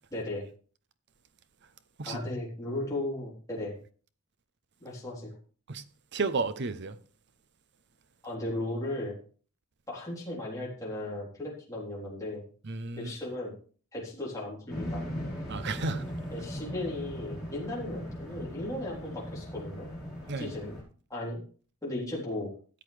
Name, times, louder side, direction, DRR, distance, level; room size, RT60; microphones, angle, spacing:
voice 1, 0.1-0.4 2.0-3.8 4.8-5.3 8.2-9.2 9.9-12.4 13.0-13.5 13.9-15.0 16.3-19.9 20.4-20.7 21.1-21.4 21.8-22.5, left 1 dB, 15° left, 3.5 m, -36 dB
voice 2, 6.1-7.0 12.6-13.1 15.5-16.0 20.3-20.5, right 3 dB, 50° right, 0.7 m, -32 dB
sound 1, 14.7-20.8, equal, ahead, 4.4 m, -39 dB
13.5 x 8.1 x 3.3 m
head